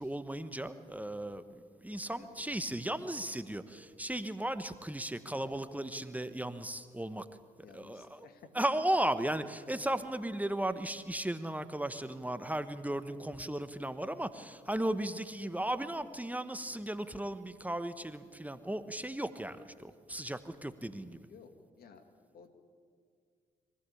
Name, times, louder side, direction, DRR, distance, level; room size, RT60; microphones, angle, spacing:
voice 1, 0.0-1.4 1.8-7.3 7.7-8.3 8.5-21.2, right 1 dB, 10° right, 11 dB, 1.3 m, -36 dB
voice 2, 7.6-8.5 9.4-9.5 15.4-15.6 20.8-21.0 21.3-21.5 21.8-22.0 22.3-22.5, left 6 dB, 70° left, 7 dB, 2.1 m, -55 dB
23.5 x 15.5 x 8.6 m, 2.1 s
hypercardioid pair, 50°, 16 cm